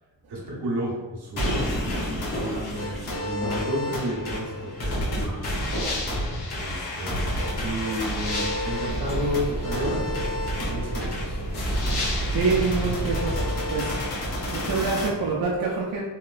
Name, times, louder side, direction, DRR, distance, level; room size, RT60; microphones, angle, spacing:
voice 1, 0.3-1.8 2.1-5.7 6.5-10.0 10.5-11.4, equal, 85° right, -3 dB, 0.9 m, -32 dB
sound 1, 1.4-15.1, left 1 dB, 75° left, 1.1 m, -29 dB
sound 2, 1.4-2.9 3.3-4.0 4.9-5.1 5.7-6.2 6.7-6.8 9.4-10.4 10.7-11.1, equal, 40° left, 1.4 m, -34 dB
sound 3, 8.9-13.3, right 1 dB, 15° right, 0.8 m, -32 dB
voice 2, 12.3-13.4 13.7-14.0 14.5-16.0, right 4 dB, 65° right, -4 dB, 0.6 m, -26 dB
3.0 x 2.9 x 2.4 m, 1.3 s
wide cardioid pair, 100°, 39 cm